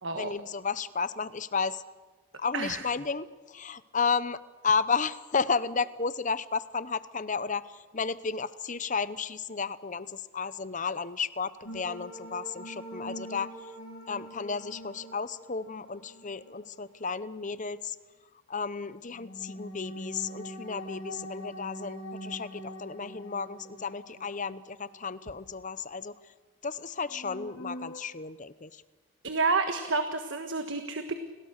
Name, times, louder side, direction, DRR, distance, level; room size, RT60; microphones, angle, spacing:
voice 1, 0.1-1.8 2.4-13.7 14.1-18.0 18.5-26.3 26.6-28.8, left 5 dB, 35° left, 16 dB, 0.8 m, -33 dB
sound 1, 11.6-16.8 19.1-25.2 25.5-25.6 27.0-28.0, equal, 80° left, 5.7 m, -43 dB
voice 2, 29.2-31.1, right 3 dB, 55° right, 7 dB, 1.5 m, -29 dB
29.5 x 19.5 x 6.6 m, 1.3 s
head